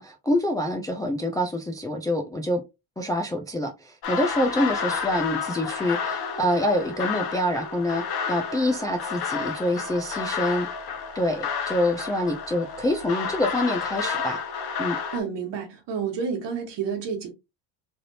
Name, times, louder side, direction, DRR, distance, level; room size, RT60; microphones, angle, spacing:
voice 1, 0.0-2.6 3.0-10.7 11.1-14.4 14.8-15.0, left 1 dB, 10° left, 0.3 m, -26 dB
Getaway Scene, 4.0-15.2, left 6 dB, 50° left, 1.0 m, -31 dB
voice 2, 15.1-17.3, right 6 dB, 60° right, 1.5 m, -30 dB
3.3 x 2.6 x 2.7 m
supercardioid pair, 80°, 48 cm